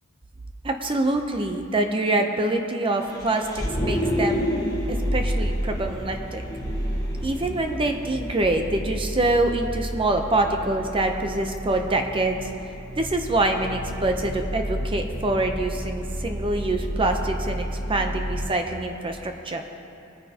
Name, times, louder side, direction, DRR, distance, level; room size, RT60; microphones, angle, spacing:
voice 1, 0.6-4.4 4.9-6.4 7.2-12.5 13.0-19.6, right 2 dB, 25° right, 4 dB, 0.7 m, -25 dB
Vehicle, 3.0-18.5, equal, 20° left, 1.4 m, -30 dB
21.5 x 9.6 x 2.9 m, 2.7 s
head